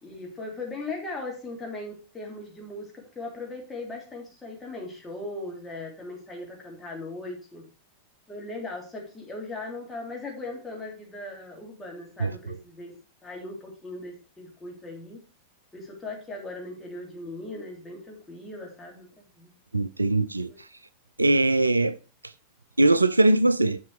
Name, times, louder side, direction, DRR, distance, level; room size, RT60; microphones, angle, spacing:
voice 1, 0.0-7.6 8.3-12.9 13.2-15.2 15.7-19.5 20.5-20.6, left 2 dB, 10° left, 3.3 m, -38 dB
voice 2, 19.7-20.5 21.2-22.0 22.8-23.8, right 2 dB, 80° right, 0.4 m, -21 dB
7.4 x 6.2 x 4.8 m
figure-of-eight pair, 90°, 0 cm